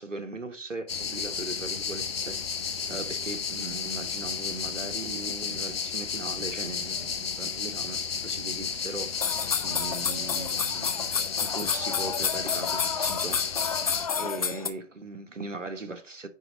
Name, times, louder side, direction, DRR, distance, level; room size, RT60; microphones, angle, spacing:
voice 1, 0.0-11.1 11.4-13.9 14.2-16.3, right 3 dB, 90° right, 1.3 m, -39 dB
sound 1, 0.9-14.1, left 6 dB, 55° left, 1.0 m, -33 dB
sound 2, 9.1-14.7, left 6 dB, 30° left, 0.5 m, -30 dB
9.1 x 3.8 x 4.4 m
figure-of-eight pair, 140°, 37 cm